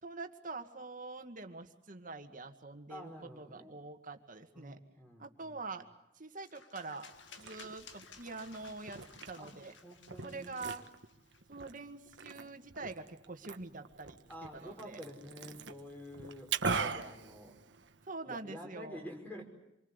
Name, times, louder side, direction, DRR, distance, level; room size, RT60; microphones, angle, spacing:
voice 1, 0.0-3.1 3.4-4.8 5.2-5.9 6.2-7.1 7.4-9.0 9.3-9.7 10.2-10.8 11.5-14.2 14.5-15.0 18.1-19.0, right 3 dB, 45° right, 6 dB, 2.0 m, -45 dB
voice 2, 2.9-3.7 4.5-5.6 9.4-9.5 9.8-10.6 14.3-17.6 18.2-19.4, equal, 10° left, 3 dB, 5.6 m, -49 dB
sound 1, 6.5-11.6, left 6 dB, 85° left, 2.1 m, -56 dB
Liquid, 7.1-18.1, right 5 dB, 75° right, 1.5 m, -42 dB
27.5 x 24.0 x 8.2 m, 0.88 s
head